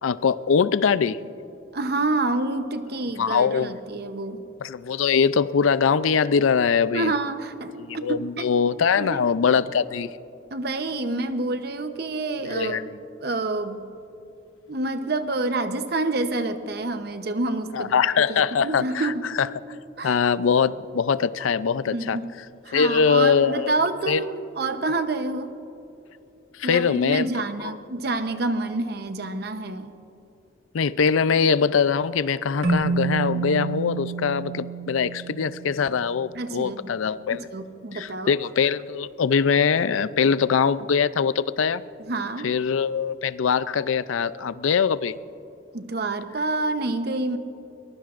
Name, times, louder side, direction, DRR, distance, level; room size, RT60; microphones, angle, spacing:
voice 1, 0.0-1.2 3.2-3.8 4.6-7.1 7.8-10.1 12.4-13.0 17.7-19.1 19.4-19.5 20.0-22.2 22.7-23.7 24.1-24.2 26.6-27.3 30.7-37.5 37.9-41.8 42.4-45.1, left 6 dB, 90° left, 16 dB, 0.5 m, -22 dB
voice 2, 1.7-4.4 6.9-8.5 9.0-9.2 10.5-12.8 13.2-13.8 14.7-17.9 18.3-19.3 20.0-20.2 21.9-22.3 22.6-25.5 26.6-29.9 36.3-36.9 37.3-38.3 42.1-42.5 45.7-47.4, right 2 dB, 55° right, 9 dB, 0.8 m, -28 dB
Keyboard (musical), 32.6-35.9, right 4 dB, 85° right, 1.9 m, -28 dB
22.0 x 21.0 x 2.5 m, 2.9 s
head